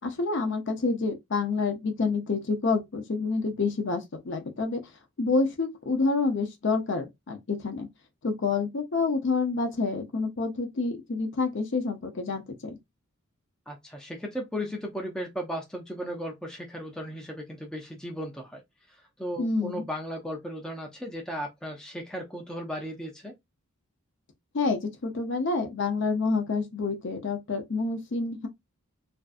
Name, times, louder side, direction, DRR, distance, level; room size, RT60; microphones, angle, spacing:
voice 1, 0.0-4.8 5.2-7.9 8.2-12.8 19.4-19.8 24.5-28.5, left 4 dB, 55° left, 0.5 m, -28 dB
voice 2, 13.7-18.6 18.9-23.3, equal, 5° left, 0.4 m, -36 dB
2.5 x 2.3 x 2.4 m
head